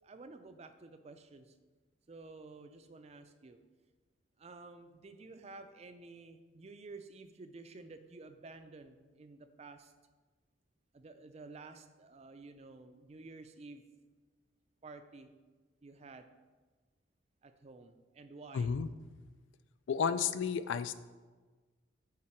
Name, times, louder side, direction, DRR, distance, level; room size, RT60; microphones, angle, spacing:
voice 1, 0.0-1.5 2.1-3.6 4.4-9.9 10.9-13.8 14.8-15.3 15.8-16.3 17.4-18.7, right 3 dB, 35° right, 9 dB, 0.4 m, -52 dB
voice 2, 18.5-18.9 19.9-21.0, left 6 dB, 70° left, 12 dB, 0.3 m, -32 dB
8.6 x 3.7 x 4.4 m, 1.3 s
head